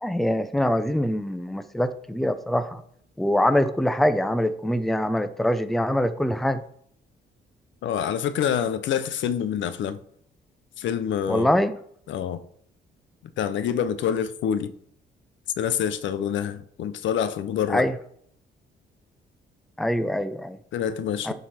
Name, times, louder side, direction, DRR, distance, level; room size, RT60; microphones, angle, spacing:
voice 1, 0.0-2.8 3.2-6.6 11.3-11.7 17.7-17.9 19.8-20.6 21.3-21.4, left 1 dB, ahead, 0.6 m, -24 dB
voice 2, 7.8-10.0 10.8-11.5 12.1-12.4 13.4-14.7 15.6-17.9 20.7-21.3, left 8 dB, 75° left, 0.7 m, -26 dB
10.5 x 4.1 x 4.2 m
cardioid pair, 90°, 20 cm